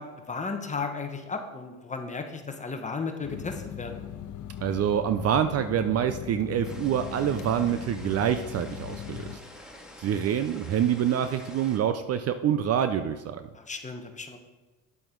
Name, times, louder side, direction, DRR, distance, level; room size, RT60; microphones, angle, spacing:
voice 1, 0.0-4.0 13.5-14.4, left 4 dB, 20° left, 5 dB, 1.1 m, -35 dB
sound 1, 3.2-9.4, left 10 dB, 50° left, 0.7 m, -39 dB
voice 2, 4.6-9.3 10.0-13.5, right 9 dB, 40° right, 10 dB, 0.5 m, -26 dB
sound 2, 6.6-11.8, left 1 dB, ahead, 1.9 m, -47 dB
9.9 x 7.6 x 3.8 m, 1.2 s
supercardioid pair, 90°, 38 cm